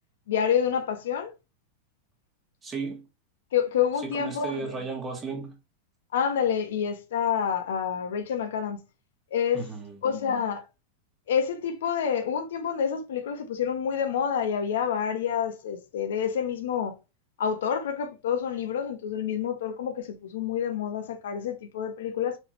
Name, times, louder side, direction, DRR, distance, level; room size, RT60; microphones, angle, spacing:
voice 1, 0.3-1.3 3.5-4.8 6.1-8.8 9.3-9.7 10.0-10.6 11.3-16.9 17.4-22.4, left 8 dB, 80° left, 1.1 m, -28 dB
voice 2, 2.6-3.0 4.0-5.5 9.5-10.0, right 4 dB, 20° right, 1.5 m, -34 dB
4.5 x 3.5 x 3.0 m
supercardioid pair, 135°, 0 cm